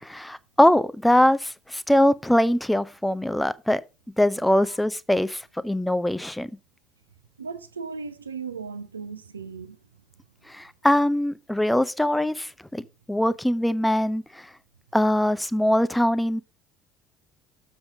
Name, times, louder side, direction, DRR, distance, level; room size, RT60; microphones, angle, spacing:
voice 1, 0.0-3.8 4.2-6.5 10.5-14.5 14.9-16.4, left 1 dB, 5° left, 0.6 m, -22 dB
voice 2, 7.4-9.8, right 5 dB, 80° right, 0.6 m, -36 dB
7.1 x 5.2 x 5.0 m
figure-of-eight pair, 60°, 0 cm